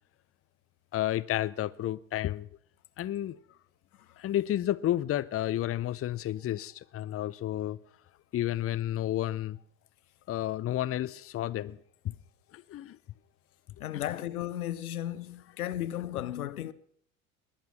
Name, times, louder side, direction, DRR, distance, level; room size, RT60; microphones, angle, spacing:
voice 1, 0.9-2.5 3.0-3.4 4.2-7.8 8.3-9.6 10.3-11.8 12.0-12.1 12.5-13.0 13.9-14.0, left 13 dB, 35° left, 0.7 m, -31 dB
voice 2, 13.8-16.7, left 12 dB, 85° left, 0.8 m, -35 dB
20.0 x 10.5 x 6.0 m
hypercardioid pair, 65°, 43 cm